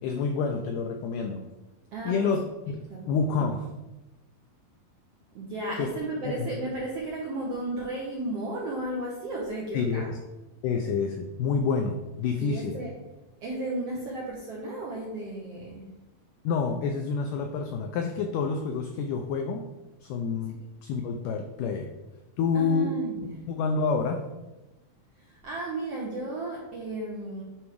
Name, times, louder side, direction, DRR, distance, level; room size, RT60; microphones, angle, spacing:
voice 1, 0.0-1.4 2.0-2.8 3.1-3.7 5.8-5.9 6.3-6.5 9.7-10.2 10.6-12.8 16.4-19.7 20.0-21.9 22.4-23.0 23.5-24.2, left 5 dB, 90° left, 4 dB, 1.8 m, -28 dB
voice 2, 1.9-2.3 2.9-3.1 5.3-10.1 12.4-12.9 13.4-15.9 22.5-23.4 25.2-27.4, right 2 dB, 70° right, -4 dB, 1.4 m, -34 dB
8.8 x 3.2 x 4.8 m, 1.0 s
omnidirectional pair, 4.2 m